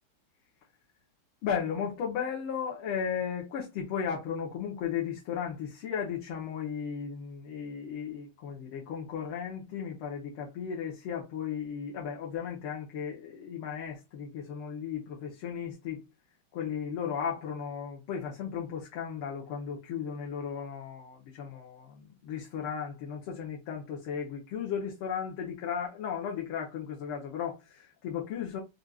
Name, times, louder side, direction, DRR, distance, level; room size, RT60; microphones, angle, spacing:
voice 1, 1.4-16.0 16.5-28.6, left 7 dB, 85° left, 1.9 m, -35 dB
6.1 x 2.6 x 2.3 m
omnidirectional pair, 2.3 m